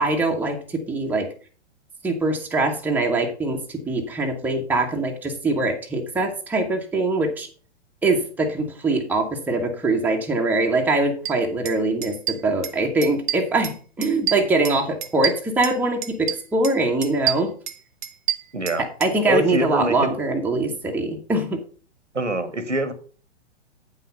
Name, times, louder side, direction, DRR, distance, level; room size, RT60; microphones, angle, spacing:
voice 1, 0.0-1.3 2.0-7.5 8.0-17.6 18.8-21.6, right 2 dB, 5° right, 1 dB, 1.2 m, -23 dB
sound 1, 11.2-11.3 11.6-11.8 12.0-12.8 13.0-13.7 14.0-15.8 16.0-16.7 17.0-19.1, right 11 dB, 45° right, 0.9 m, -28 dB
voice 2, 18.5-18.8 19.3-20.1 22.1-22.9, right 1 dB, 85° right, 12 dB, 1.5 m, -24 dB
8.8 x 5.7 x 5.5 m, 0.39 s
figure-of-eight pair, 115°, 35 cm